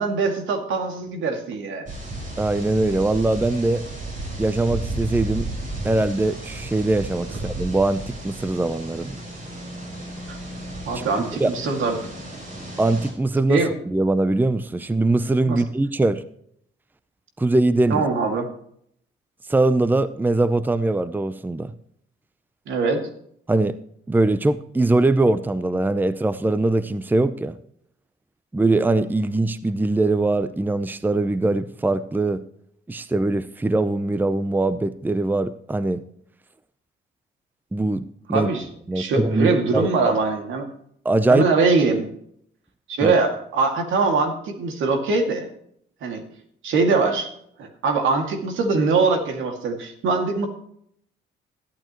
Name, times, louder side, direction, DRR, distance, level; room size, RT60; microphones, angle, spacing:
voice 1, 0.0-1.9 10.3-10.4 10.9-12.0 13.5-13.7 15.5-15.6 17.9-18.5 22.7-23.0 38.3-38.7 38.9-40.7 41.3-42.1 42.9-45.5 46.0-46.2 46.6-47.3 47.6-50.5, right 4 dB, 80° right, 4 dB, 2.3 m, -22 dB
sound 1, 1.9-13.1, right 2 dB, 40° right, 5.3 m, -33 dB
voice 2, 2.4-3.8 4.4-5.5 5.8-9.2 10.9-11.0 11.4-11.5 12.8-16.2 17.4-18.0 19.5-21.7 23.5-23.8 24.1-27.5 28.5-32.4 32.9-36.0 37.7-38.5 38.9-39.9 41.0-41.5 43.0-43.1, right 2 dB, 10° right, 13 dB, 0.6 m, -22 dB
14.0 x 12.0 x 3.1 m, 0.69 s
cardioid pair, 90°, 20 cm